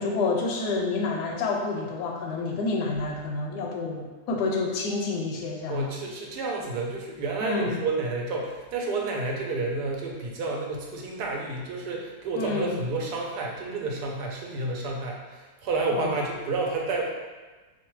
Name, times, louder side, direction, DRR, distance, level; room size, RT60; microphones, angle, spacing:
voice 1, 0.0-5.9 7.4-7.8 12.4-12.8 15.9-16.1, left 3 dB, 80° left, 1 dB, 1.1 m, -28 dB
voice 2, 5.7-17.0, right 3 dB, 75° right, -1 dB, 1.2 m, -30 dB
4.6 x 2.2 x 3.0 m, 1.3 s
omnidirectional pair, 1.8 m